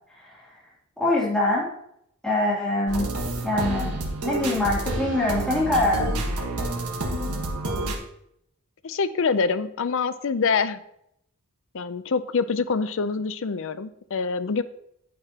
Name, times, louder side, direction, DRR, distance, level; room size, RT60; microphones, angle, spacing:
voice 1, 1.0-1.7 2.2-3.1 3.4-3.9 4.2-6.1, left 2 dB, 5° left, -7 dB, 2.8 m, -24 dB
sound 1, 2.9-8.0, right 1 dB, 85° right, 1.4 m, -29 dB
voice 2, 8.8-10.8 11.7-14.6, left 5 dB, 60° left, 13 dB, 0.5 m, -25 dB
9.4 x 8.7 x 2.9 m, 0.75 s
head